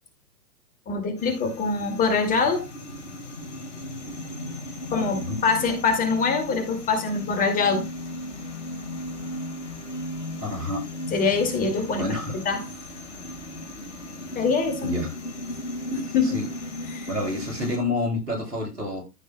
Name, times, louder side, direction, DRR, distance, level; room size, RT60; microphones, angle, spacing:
voice 1, 0.9-2.6 4.9-7.8 11.1-12.1 12.4-12.7 14.3-14.9 15.9-16.4 16.9-17.1, left 4 dB, 15° left, 2.3 m, -24 dB
sound 1, 1.2-17.8, left 1 dB, 50° left, 4.6 m, -36 dB
voice 2, 10.4-10.8 11.9-12.4 14.8-15.1 16.2-16.5 17.1-19.0, left 2 dB, 80° right, 6.6 m, -28 dB
14.5 x 6.9 x 2.2 m
figure-of-eight pair, 115°, 46 cm